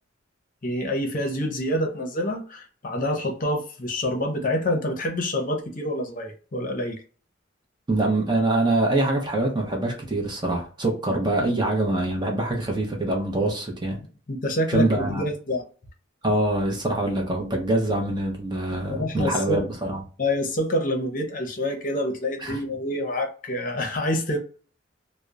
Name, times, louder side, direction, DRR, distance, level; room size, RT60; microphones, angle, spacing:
voice 1, 0.6-7.0 14.3-15.6 18.9-19.6 20.2-24.4, left 1 dB, 45° left, 0.7 m, -27 dB
voice 2, 7.9-14.0 14.7-15.2 16.2-20.0 22.4-22.6, right 2 dB, 20° right, 0.6 m, -24 dB
2.8 x 2.0 x 2.3 m
head